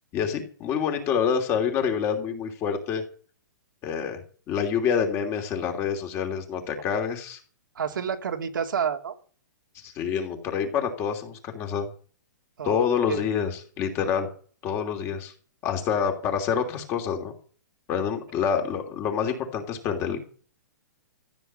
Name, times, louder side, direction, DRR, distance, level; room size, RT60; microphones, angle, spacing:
voice 1, 0.1-3.0 3.8-4.2 4.5-7.4 9.8-11.9 12.6-14.3 14.6-15.3 15.6-17.3 17.9-20.2, left 7 dB, 25° left, 4 dB, 3.0 m, -27 dB
voice 2, 7.7-9.2 12.6-13.3, right 7 dB, 90° right, 4 dB, 2.6 m, -29 dB
14.5 x 7.4 x 8.9 m, 0.42 s
hypercardioid pair, 160°, 11 cm